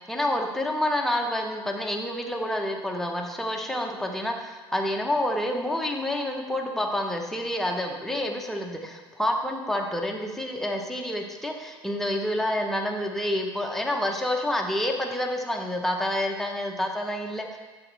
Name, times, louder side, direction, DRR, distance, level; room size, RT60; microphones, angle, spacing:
voice 1, 0.1-17.6, left 1 dB, ahead, 1 dB, 1.2 m, -28 dB
8.3 x 7.3 x 3.5 m, 1.3 s
hypercardioid pair, 65°, 13 cm